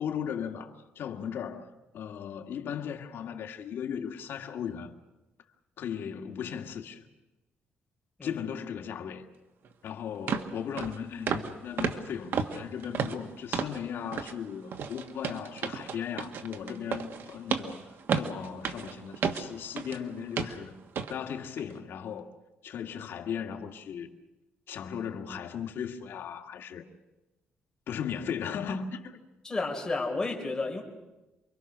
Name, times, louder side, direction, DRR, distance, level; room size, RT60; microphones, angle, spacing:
voice 1, 0.0-4.9 5.8-7.1 8.2-9.3 9.8-20.8 21.1-22.3 22.6-24.1 24.7-26.9 27.9-29.2, left 8 dB, 65° left, 2.0 m, -37 dB
sound 1, 9.7-9.8 10.3-10.5 10.8-11.0 11.3-11.5 11.8-13.8 14.1-14.4 14.7-20.0 20.4-20.6 21.0-21.1 21.6-21.7, right 6 dB, 60° right, 1.5 m, -32 dB
voice 2, 29.4-30.8, left 3 dB, 15° left, 3.8 m, -31 dB
28.5 x 23.5 x 6.3 m
cardioid pair, 160°, 4 cm